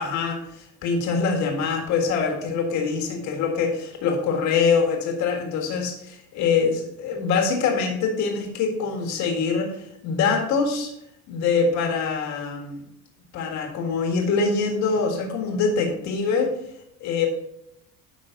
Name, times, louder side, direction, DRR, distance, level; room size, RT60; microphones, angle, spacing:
voice 1, 0.0-10.9 11.3-12.8 13.3-16.5 17.0-17.3, left 5 dB, 65° left, 2 dB, 1.8 m, -24 dB
9.8 x 5.5 x 3.8 m, 0.76 s
cardioid pair, 145°, 31 cm